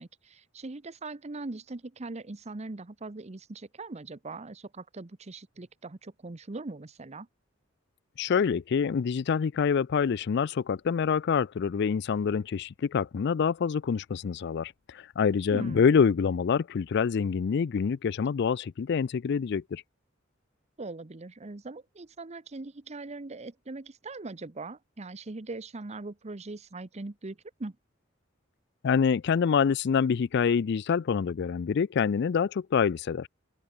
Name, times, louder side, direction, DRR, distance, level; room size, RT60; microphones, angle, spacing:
voice 1, 0.0-7.3 15.5-16.0 20.8-27.8, right 3 dB, 35° right, 0.8 m, -41 dB
voice 2, 8.2-19.8 28.8-33.3, left 6 dB, 60° left, 0.4 m, -26 dB
open air
head